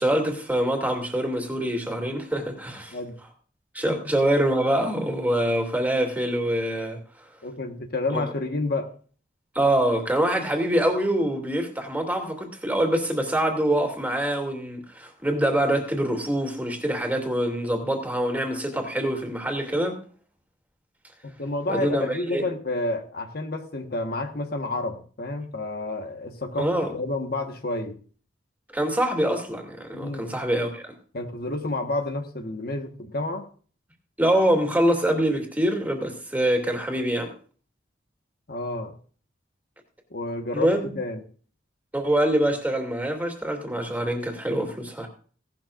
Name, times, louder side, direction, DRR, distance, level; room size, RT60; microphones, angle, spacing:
voice 1, 0.0-3.0 3.7-7.0 8.1-8.2 9.5-20.0 21.7-22.4 26.6-26.9 28.7-30.9 34.2-37.3 40.5-40.8 41.9-45.1, right 1 dB, 10° right, 2 dB, 2.6 m, -25 dB
voice 2, 7.4-8.9 21.4-28.0 29.9-30.3 31.1-33.5 38.5-38.9 40.1-41.2, left 2 dB, 55° left, 5 dB, 1.4 m, -30 dB
17.0 x 12.0 x 2.5 m, 0.42 s
head